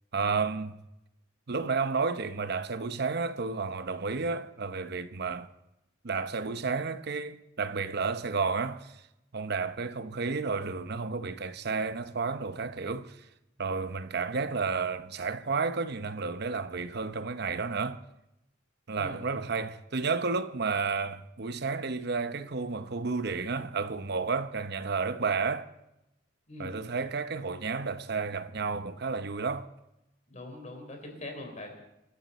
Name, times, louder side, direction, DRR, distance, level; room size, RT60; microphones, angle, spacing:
voice 1, 0.1-0.8 1.5-5.5 6.0-9.0 9.3-13.2 13.6-18.0 18.9-25.7 26.6-29.7, right 4 dB, 55° right, 0.8 m, -31 dB
voice 2, 30.3-31.7, left 2 dB, 35° left, 3.9 m, -42 dB
29.0 x 12.0 x 4.1 m
head